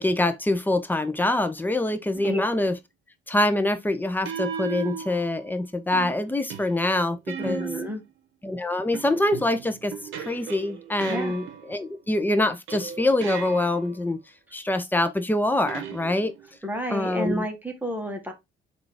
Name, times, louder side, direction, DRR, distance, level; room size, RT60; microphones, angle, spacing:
voice 1, 0.0-2.7 3.3-7.7 8.4-9.9 10.2-14.2 14.5-16.3 16.9-17.4, left 1 dB, 10° left, 0.5 m, -25 dB
sound 1, 2.2-2.5 4.3-5.5 5.9-8.1 8.9-11.9 12.7-14.0 15.7-16.6, right 8 dB, 90° right, 0.8 m, -37 dB
voice 2, 7.4-8.0 11.1-11.3 16.6-18.3, equal, 10° right, 1.0 m, -30 dB
3.7 x 2.5 x 3.4 m
cardioid pair, 90°, 20 cm